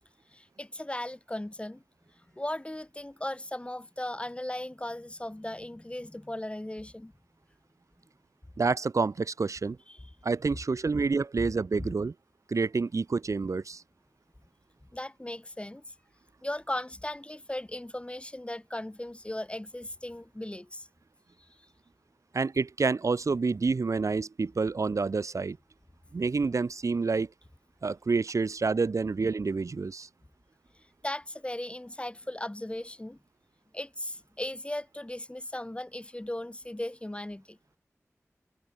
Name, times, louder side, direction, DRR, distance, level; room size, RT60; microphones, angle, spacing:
voice 1, 0.3-1.8 2.3-7.1 9.9-10.0 11.4-11.5 11.8-11.9 14.9-15.9 16.4-20.9 31.0-33.2 33.7-37.6, left 1 dB, 20° left, 0.9 m, -37 dB
voice 2, 8.6-9.8 10.2-12.1 12.5-13.8 22.3-25.6 26.1-27.3 27.8-30.1, right 4 dB, 70° right, 0.6 m, -28 dB
wide cardioid pair, 45°, 6 cm